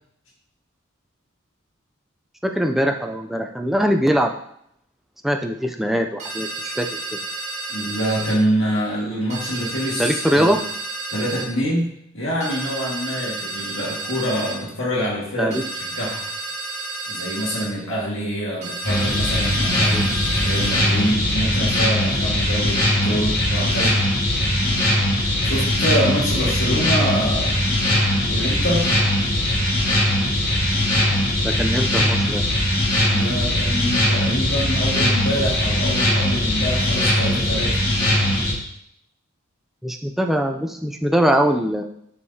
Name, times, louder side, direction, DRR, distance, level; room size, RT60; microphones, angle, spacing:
voice 1, 2.4-4.3 5.2-6.9 10.0-10.6 15.4-15.6 19.9-20.1 31.4-32.4 39.8-41.8, equal, ahead, 3 dB, 0.4 m, -21 dB
sound 1, 6.2-8.4 9.3-11.5 12.4-14.6 15.5-17.7 18.6-20.8, right 2 dB, 35° right, 1.6 m, -31 dB
voice 2, 7.7-10.5 11.1-15.6 15.9-16.3 17.1-20.0 20.4-24.0 25.4-27.6 28.3-28.9 33.0-37.8, equal, 65° left, -5 dB, 1.9 m, -25 dB
sound 2, 18.8-38.5, left 1 dB, 45° left, 1.8 m, -20 dB
7.1 x 6.6 x 2.8 m, 0.72 s
head